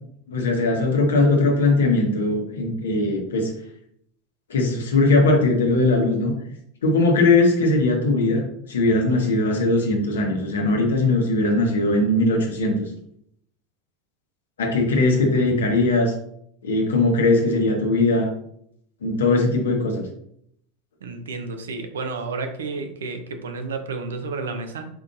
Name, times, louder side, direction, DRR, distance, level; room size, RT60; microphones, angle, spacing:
voice 1, 0.3-3.5 4.5-6.3 6.8-12.9 14.6-16.1 16.6-18.3 19.0-20.1, left 2 dB, 90° left, 2 dB, 1.1 m, -20 dB
voice 2, 21.0-24.9, right 4 dB, 90° right, 6 dB, 0.7 m, -31 dB
4.9 x 3.9 x 2.6 m, 0.71 s
hypercardioid pair, 95°, 0 cm